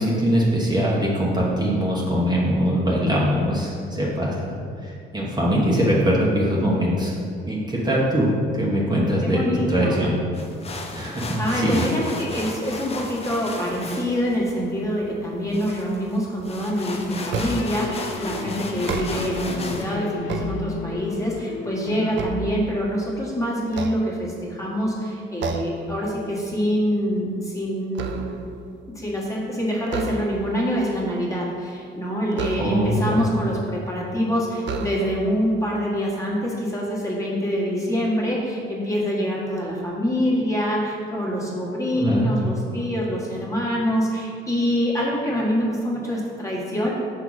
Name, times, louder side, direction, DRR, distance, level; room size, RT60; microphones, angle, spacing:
voice 1, 0.0-4.6 4.8-7.2 7.5-7.6 7.8-9.4 9.7-10.2 10.9-11.9 32.6-33.2 41.9-42.3, equal, 20° right, -5 dB, 1.1 m, -22 dB
voice 2, 9.2-10.0 11.2-28.3 28.9-46.9, equal, 15° left, -4 dB, 1.5 m, -25 dB
sound 1, 10.3-19.9, left 3 dB, 30° left, 0.7 m, -35 dB
sound 2, 17.2-22.8, left 5 dB, 80° left, 0.4 m, -34 dB
sound 3, 17.3-17.9 18.7-19.5 20.0-21.1 21.6-23.1 23.7-24.6 25.4-25.9 26.3-26.5 26.9-28.6 29.8-30.6 32.3-33.1 33.9-34.0 34.6-35.4, right 4 dB, 65° right, 0.5 m, -32 dB
5.6 x 4.7 x 4.0 m, 2.2 s
cardioid pair, 90°, 20 cm